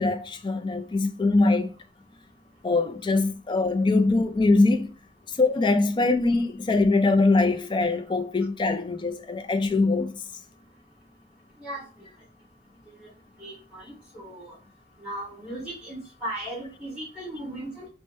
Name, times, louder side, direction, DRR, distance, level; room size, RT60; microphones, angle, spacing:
voice 1, 0.0-1.7 2.6-4.9 5.3-10.2, left 3 dB, 25° left, 0.3 m, -22 dB
voice 2, 13.4-13.8 14.1-14.5 15.0-17.9, right 1 dB, 5° right, 2.0 m, -36 dB
4.3 x 2.1 x 3.1 m
head